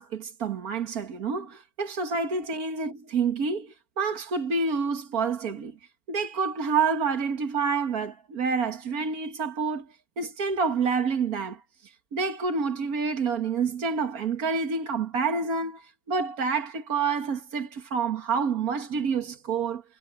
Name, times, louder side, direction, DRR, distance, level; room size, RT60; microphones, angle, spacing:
voice 1, 0.0-5.8 6.1-9.9 10.2-11.6 12.1-19.8, right 5 dB, 80° right, 2.2 m, -28 dB
omnidirectional pair, 1.5 m